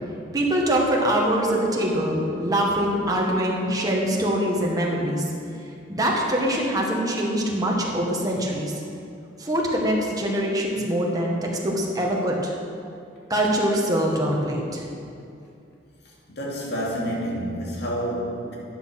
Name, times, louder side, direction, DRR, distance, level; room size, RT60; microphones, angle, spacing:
voice 1, 0.3-5.3 5.9-8.7 9.4-12.5 13.3-14.8, right 1 dB, 20° right, -2 dB, 1.7 m, -23 dB
voice 2, 16.3-18.6, equal, 60° left, -3 dB, 2.8 m, -28 dB
12.5 x 8.9 x 6.1 m, 2.5 s
head